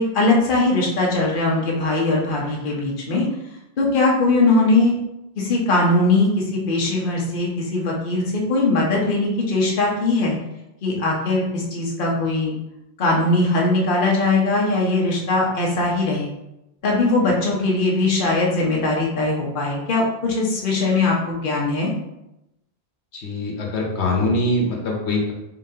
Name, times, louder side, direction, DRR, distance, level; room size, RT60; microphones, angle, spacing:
voice 1, 0.0-3.2 3.8-4.9 5.4-10.3 10.8-12.6 13.0-16.4 16.8-21.9, left 2 dB, 55° left, -2 dB, 1.0 m, -20 dB
voice 2, 23.1-25.3, left 1 dB, 90° left, -1 dB, 1.2 m, -23 dB
4.0 x 3.9 x 2.8 m, 0.88 s
omnidirectional pair, 1.1 m